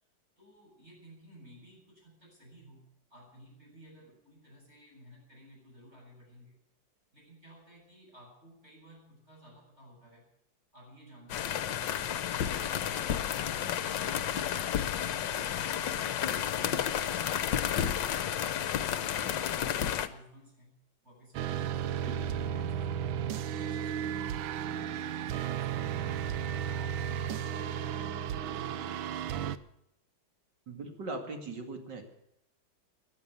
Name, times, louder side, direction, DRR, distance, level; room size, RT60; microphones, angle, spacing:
voice 1, 0.4-6.6 7.1-10.3 10.7-13.2 13.6-15.9 16.3-19.5 19.8-20.7 21.0-24.4 24.7-26.3, equal, 35° right, -2 dB, 8.5 m, -56 dB
sound 1, 11.3-20.1, left 9 dB, 70° left, 1.5 m, -31 dB
sound 2, 21.3-29.6, right 9 dB, 85° right, 1.5 m, -34 dB
voice 2, 30.7-32.0, right 3 dB, 60° right, 4 dB, 3.0 m, -39 dB
16.5 x 11.5 x 6.9 m, 0.81 s
omnidirectional pair, 2.1 m